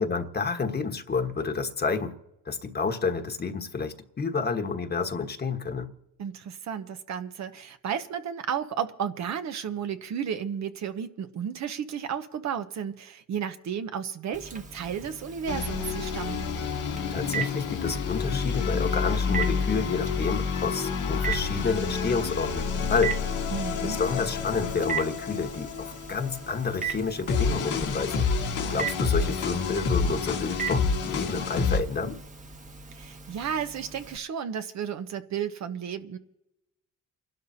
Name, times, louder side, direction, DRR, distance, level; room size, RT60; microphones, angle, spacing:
voice 1, 0.0-2.1 2.4-5.9 17.1-23.1 23.8-28.3 28.7-32.2, left 4 dB, 35° left, 1.3 m, -29 dB
voice 2, 6.2-16.5 23.5-24.0 32.9-36.2, right 8 dB, 65° right, 1.0 m, -33 dB
Telephone, 14.3-34.2, right 7 dB, 25° right, 1.2 m, -39 dB
sound 1, 15.5-31.8, left 5 dB, 80° left, 1.9 m, -29 dB
29.0 x 12.0 x 2.8 m
cardioid pair, 90°, 30 cm